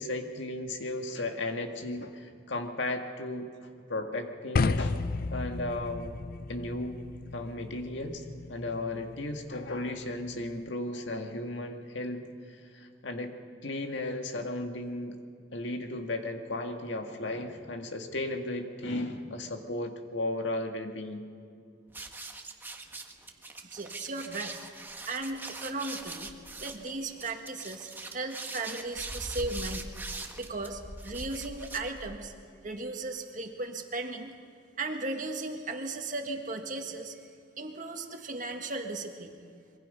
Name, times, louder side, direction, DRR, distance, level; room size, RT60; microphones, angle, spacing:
voice 1, 0.0-3.5 3.9-5.0 5.3-6.2 6.5-7.0 7.3-12.2 12.5-13.3 13.6-15.2 15.5-21.2, left 2 dB, 75° left, 4 dB, 1.9 m, -35 dB
sound 1, 4.6-10.7, left 3 dB, 50° left, 0.4 m, -34 dB
sound 2, 21.9-32.4, right 2 dB, 10° right, 1.2 m, -41 dB
voice 2, 23.6-24.6 25.1-26.3 26.6-29.9 30.4-32.3 32.6-34.3 34.8-37.3 37.6-39.3, right 3 dB, 45° right, 4 dB, 1.9 m, -36 dB
25.0 x 23.0 x 5.6 m, 2.4 s
head